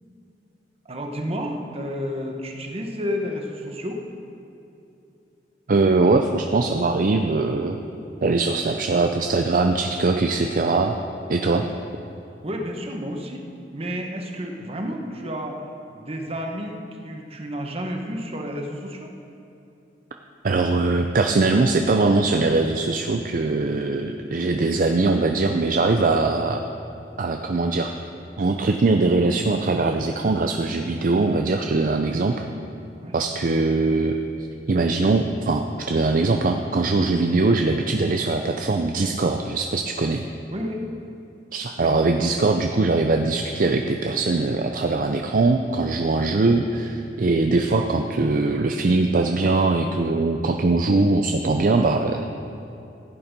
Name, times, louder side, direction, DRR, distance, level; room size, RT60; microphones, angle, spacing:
voice 1, 0.8-4.0 11.2-11.8 12.4-13.4 13.7-15.6 15.9-19.1 24.3-24.5 33.0-33.1 40.5-40.8 41.8-41.9 46.1-46.3 47.6-47.7, equal, 35° right, 2 dB, 1.2 m, -31 dB
voice 2, 5.7-7.8 8.2-11.0 11.3-11.7 20.4-26.6 27.2-27.9 28.4-32.5 33.1-34.2 34.7-40.2 41.5-52.2, right 3 dB, 50° right, 4 dB, 0.5 m, -21 dB
15.0 x 8.7 x 5.2 m, 2.8 s
head